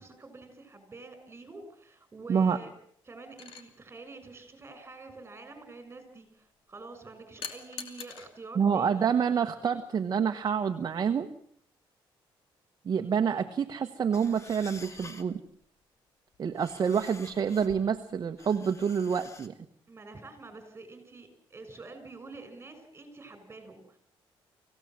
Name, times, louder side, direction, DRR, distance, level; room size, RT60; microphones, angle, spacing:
voice 1, 0.0-2.7 3.1-9.1 19.9-24.0, right 3 dB, 25° right, 9 dB, 6.6 m, -47 dB
sound 1, 3.4-3.7 7.4-8.3 9.7-9.9, left 7 dB, 75° left, 2.7 m, -41 dB
voice 2, 8.5-11.3 12.8-15.4 16.4-19.5, right 7 dB, 45° right, 6 dB, 1.3 m, -27 dB
sound 2, 14.1-15.4 16.3-17.9 18.4-19.5, left 3 dB, 30° left, 2.2 m, -49 dB
25.5 x 16.5 x 7.6 m, 0.64 s
cardioid pair, 95°, 9 cm